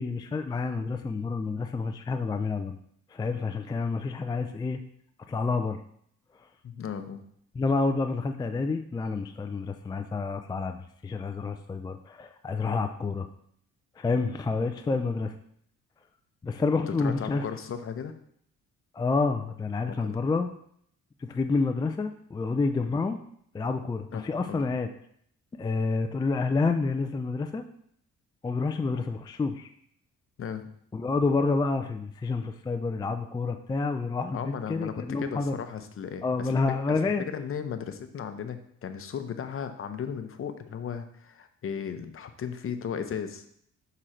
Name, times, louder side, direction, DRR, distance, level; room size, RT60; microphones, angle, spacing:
voice 1, 0.0-2.8 3.1-4.8 5.3-5.8 6.3-6.5 7.5-10.8 11.0-13.3 14.0-15.3 16.4-17.4 18.9-20.5 21.2-23.2 23.5-24.9 25.6-27.6 28.4-29.7 30.9-34.4 34.7-35.5 36.2-37.2, left 4 dB, 15° left, 7 dB, 0.3 m, -28 dB
voice 2, 6.6-7.2 16.9-18.1 19.9-20.2 24.1-24.7 30.4-30.7 34.3-36.5 36.9-43.4, left 7 dB, 45° left, 9 dB, 0.7 m, -36 dB
6.2 x 3.9 x 4.3 m, 0.67 s
cardioid pair, 95°, 30 cm